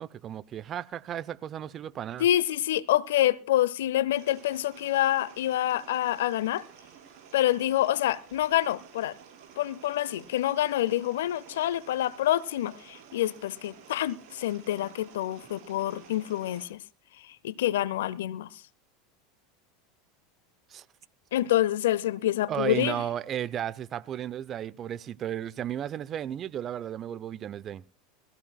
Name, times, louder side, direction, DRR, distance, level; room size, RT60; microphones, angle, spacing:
voice 1, 0.0-2.3 20.7-20.8 22.5-27.8, right 10 dB, 40° right, 0.6 m, -34 dB
voice 2, 2.2-6.6 7.3-9.2 9.6-16.8 17.3-18.6 21.3-23.0, left 13 dB, 75° left, 0.7 m, -27 dB
sound 1, 4.1-16.7, right 7 dB, 55° right, 5.4 m, -52 dB
22.0 x 15.0 x 2.3 m
hypercardioid pair, 85°, 0 cm